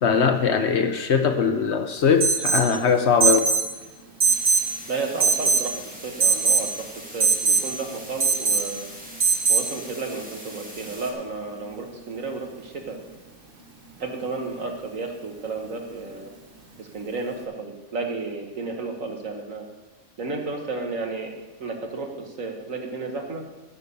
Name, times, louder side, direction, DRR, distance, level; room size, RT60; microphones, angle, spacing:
voice 1, 0.0-3.4, left 6 dB, 60° left, 7 dB, 1.0 m, -20 dB
Alarm, 2.2-2.7 3.2-3.7 4.2-4.7 5.2-5.7 6.2-6.7 7.2-7.7 8.2-8.7 9.2-9.7, right 5 dB, 40° right, 1.4 m, -20 dB
sound 1, 4.2-11.1, equal, 5° right, 1.8 m, -42 dB
voice 2, 4.9-8.9 9.5-13.0 14.0-16.3 16.8-19.6 20.2-21.3 21.6-23.4, right 3 dB, 70° right, 2 dB, 1.9 m, -32 dB
14.0 x 5.8 x 6.8 m, 1.1 s
omnidirectional pair, 1.4 m